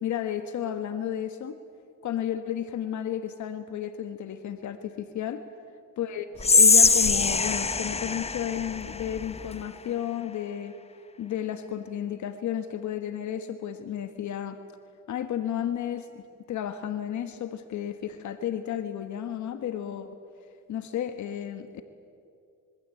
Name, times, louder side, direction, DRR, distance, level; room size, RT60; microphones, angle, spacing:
voice 1, 0.0-1.6 2.0-5.4 6.0-10.7 11.2-14.6 15.1-16.2 16.5-20.1 20.7-21.9, left 10 dB, 70° left, 9 dB, 1.5 m, -32 dB
Whispering, 6.4-9.6, left 4 dB, 20° left, 1.0 m, -22 dB
26.0 x 24.0 x 8.5 m, 2.3 s
cardioid pair, 90°, 30 cm